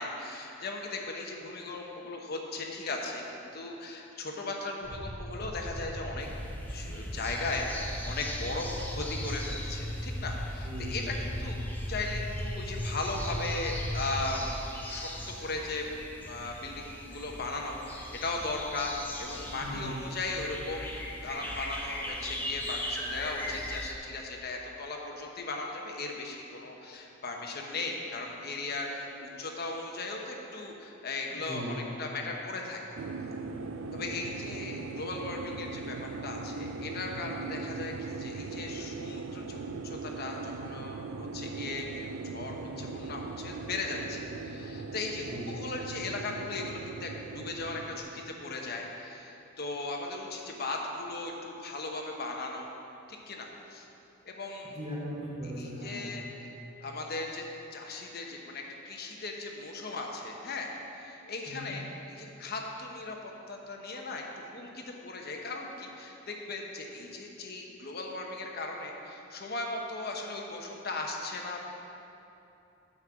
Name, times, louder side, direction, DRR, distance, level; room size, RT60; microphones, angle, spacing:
voice 1, 0.0-6.3 6.7-11.6 11.9-15.9 16.2-33.0 33.9-52.7 53.1-53.9 54.2-54.8 55.6-56.5 56.8-57.4 57.7-71.6, left 2 dB, 55° left, 1 dB, 1.0 m, -37 dB
sound 1, 4.8-14.3, equal, 70° right, 2.0 m, -37 dB
sound 2, 6.2-23.9, left 1 dB, 10° left, 0.9 m, -41 dB
voice 2, 10.5-11.1 19.6-20.1 31.3-31.8 42.5-42.8 45.3-45.5 54.6-56.1 61.5-61.8, equal, 40° right, -5 dB, 2.6 m, -39 dB
sound 3, 33.0-48.0, right 4 dB, 85° right, 0.5 m, -39 dB
9.7 x 5.4 x 7.5 m, 2.8 s
head